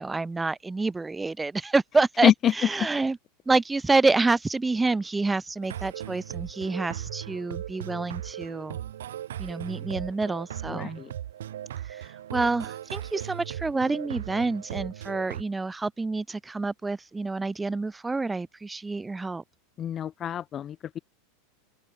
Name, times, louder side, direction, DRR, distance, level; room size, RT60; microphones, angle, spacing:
voice 1, 0.0-3.2 3.5-8.8 9.4-11.0 11.9-19.4, right 3 dB, 10° right, 1.0 m, -28 dB
sound 1, 5.6-15.4, right 11 dB, 90° right, 0.7 m, -37 dB
voice 2, 10.7-11.1 19.8-21.0, left 10 dB, 30° left, 0.5 m, -25 dB
open air
supercardioid pair, 115°, 0 cm